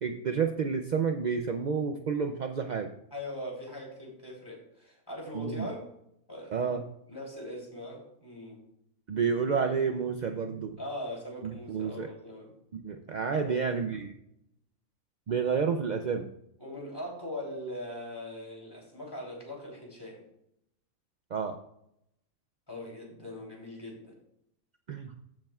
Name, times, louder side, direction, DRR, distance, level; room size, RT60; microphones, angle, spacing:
voice 1, 0.0-2.9 5.3-5.7 6.5-6.8 9.1-10.8 11.4-12.1 12.7-14.1 15.3-16.3 21.3-21.6 24.9-25.1, right 6 dB, 60° right, 5 dB, 0.4 m, -30 dB
voice 2, 3.1-5.9 6.3-6.7 7.1-8.6 10.8-12.5 13.4-13.6 15.3-15.4 16.6-20.2 22.7-24.1, left 1 dB, 15° left, -2 dB, 3.4 m, -41 dB
14.5 x 7.3 x 2.4 m, 0.76 s
omnidirectional pair, 1.4 m